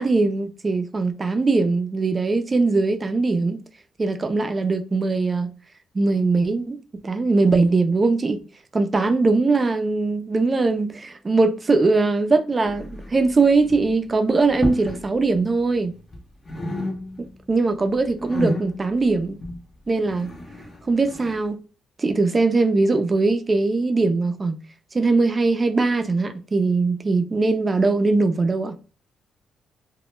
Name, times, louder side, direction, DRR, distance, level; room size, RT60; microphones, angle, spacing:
voice 1, 0.0-3.6 4.0-5.5 5.9-6.8 7.0-8.4 8.7-15.9 17.5-19.4 19.9-20.3 20.8-21.6 22.0-24.6 24.9-28.8, right 3 dB, 30° right, 0.4 m, -21 dB
sound 1, 12.6-13.3 13.6-14.0 14.5-15.1 15.3-16.2 16.4-17.4 17.7-21.4, left 1 dB, 30° left, 0.6 m, -32 dB
2.1 x 2.0 x 3.0 m
cardioid pair, 90°, 0 cm